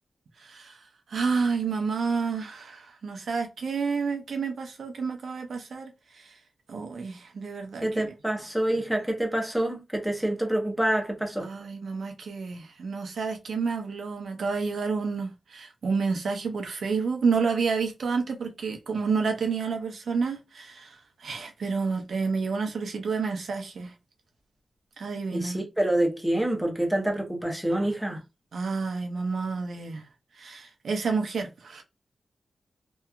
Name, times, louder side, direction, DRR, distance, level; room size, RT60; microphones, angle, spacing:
voice 1, 0.4-0.8 1.1-6.4 6.7-8.1 11.4-23.9 25.0-25.6 27.7-27.9 28.5-30.1 30.3-31.8, right 5 dB, 70° right, 0.5 m, -30 dB
voice 2, 7.8-11.5 25.3-28.2, right 1 dB, ahead, 0.6 m, -27 dB
2.8 x 2.3 x 2.3 m
wide cardioid pair, 130°, 0 cm